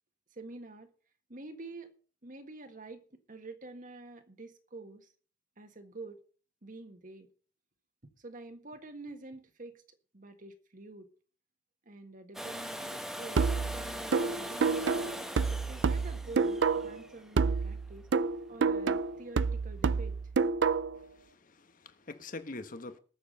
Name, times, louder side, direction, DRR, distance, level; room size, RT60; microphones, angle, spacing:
voice 1, 0.3-0.9 1.3-1.9 2.2-5.1 5.6-6.2 6.6-7.3 8.2-9.8 10.1-11.1 11.8-15.2 15.7-18.1 18.5-20.2, right 2 dB, 45° right, 1.6 m, -47 dB
Domestic sounds home sounds, 12.3-18.1 20.1-20.2, equal, ahead, 1.0 m, -41 dB
sound 1, 13.4-17.0 17.4-21.0, right 5 dB, 80° right, 0.5 m, -29 dB
voice 2, 21.0-23.0, left 2 dB, 50° left, 1.2 m, -44 dB
19.5 x 7.0 x 5.4 m
head